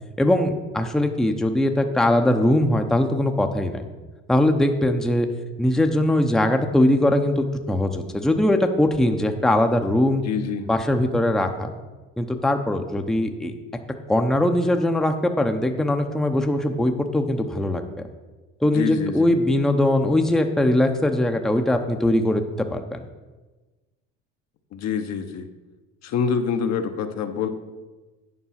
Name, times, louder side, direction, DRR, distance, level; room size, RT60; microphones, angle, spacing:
voice 1, 0.2-3.8 4.3-5.3 5.6-10.2 10.7-11.7 12.2-13.5 14.1-17.8 18.6-23.0, left 1 dB, ahead, 5 dB, 0.7 m, -21 dB
voice 2, 10.2-10.7 18.7-19.4 24.7-25.5 26.0-27.5, left 6 dB, 55° left, 7 dB, 0.9 m, -26 dB
9.6 x 5.3 x 5.7 m, 1.2 s
supercardioid pair, 100°, 31 cm